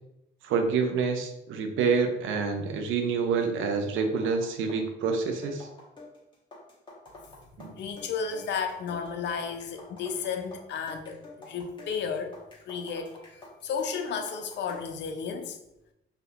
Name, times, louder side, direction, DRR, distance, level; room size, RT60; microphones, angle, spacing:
voice 1, 0.4-5.7 7.6-7.7, right 5 dB, 85° right, 6 dB, 0.5 m, -27 dB
sound 1, 3.4-15.0, left 2 dB, 25° left, 1.1 m, -49 dB
voice 2, 7.8-12.4 12.7-15.6, left 6 dB, 60° left, 6 dB, 0.5 m, -33 dB
3.4 x 2.7 x 2.4 m, 0.87 s
cardioid pair, 90°, 20 cm